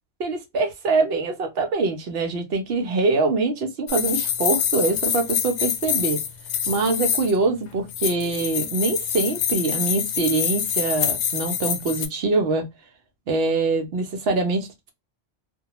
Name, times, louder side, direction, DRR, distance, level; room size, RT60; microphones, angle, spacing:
voice 1, 0.2-6.2 6.7-12.7 13.3-14.9, right 3 dB, 70° right, 0.8 m, -24 dB
sound 1, 3.9-7.4 7.9-12.1, left 8 dB, 85° left, 0.9 m, -26 dB
2.2 x 2.1 x 2.9 m
omnidirectional pair, 1.1 m